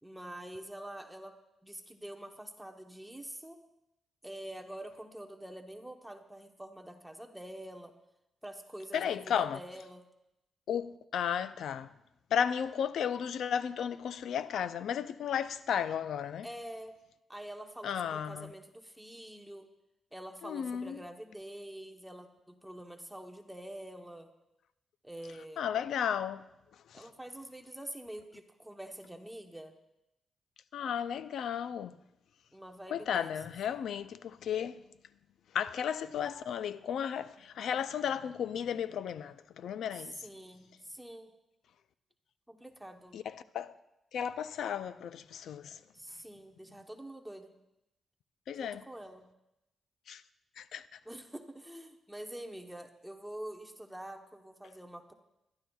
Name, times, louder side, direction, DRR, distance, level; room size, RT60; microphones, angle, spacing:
voice 1, 0.0-3.6 4.2-7.9 8.4-10.1 16.4-17.0 17.3-19.7 20.1-24.3 25.0-25.7 26.9-29.7 32.5-33.3 40.0-41.3 42.5-43.2 45.9-47.6 48.6-49.3 51.1-55.1, right 1 dB, 5° right, 0.9 m, -46 dB
voice 2, 8.9-9.6 10.7-11.9 12.3-16.5 17.8-18.5 20.4-21.0 25.6-26.4 26.9-27.1 30.7-31.9 32.9-34.8 35.5-40.2 43.1-43.7 44.1-45.8 48.5-48.8 50.1-50.2 50.6-50.9, left 8 dB, 85° left, 0.4 m, -34 dB
22.5 x 11.5 x 2.3 m
cardioid pair, 105°, 0 cm